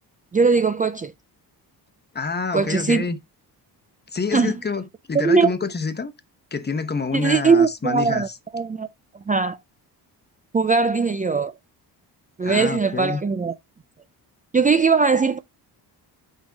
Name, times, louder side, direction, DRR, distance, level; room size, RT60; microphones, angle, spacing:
voice 1, 0.3-1.1 2.5-3.0 4.3-4.5 5.1-5.5 7.1-8.3 8.5-8.9 9.3-9.6 10.5-11.5 12.4-13.5 14.5-15.4, right 4 dB, 20° right, 0.5 m, -20 dB
voice 2, 2.1-3.2 4.1-6.1 6.5-8.4 12.4-13.2, left 4 dB, 25° left, 1.0 m, -27 dB
7.4 x 5.3 x 3.5 m
cardioid pair, 125°, 40 cm